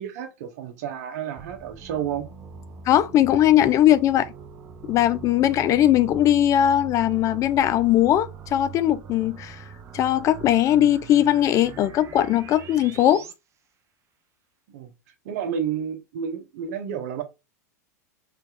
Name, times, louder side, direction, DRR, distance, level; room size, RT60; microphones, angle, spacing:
voice 1, 0.0-2.3 14.7-14.9 15.2-17.2, right 8 dB, 65° right, 1.0 m, -31 dB
sound 1, 1.4-13.3, right 7 dB, 30° right, 0.7 m, -42 dB
voice 2, 2.9-4.3 4.9-9.6 9.9-13.2, left 12 dB, 35° left, 0.4 m, -19 dB
3.4 x 2.9 x 3.7 m
hypercardioid pair, 105°, 9 cm